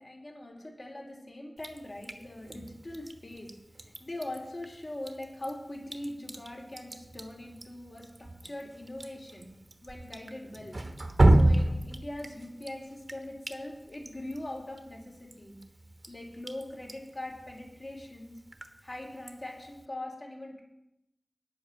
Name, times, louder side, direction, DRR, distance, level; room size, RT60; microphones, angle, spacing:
voice 1, 0.0-3.5 4.0-9.5 9.8-10.8 11.3-15.5 16.1-18.4 18.8-20.6, left 1 dB, 55° left, 0 dB, 3.2 m, -42 dB
Drip, 1.6-19.9, right 1 dB, 55° right, 1.1 m, -32 dB
9.3 x 8.4 x 7.1 m, 0.86 s
wide cardioid pair, 50°, 0 cm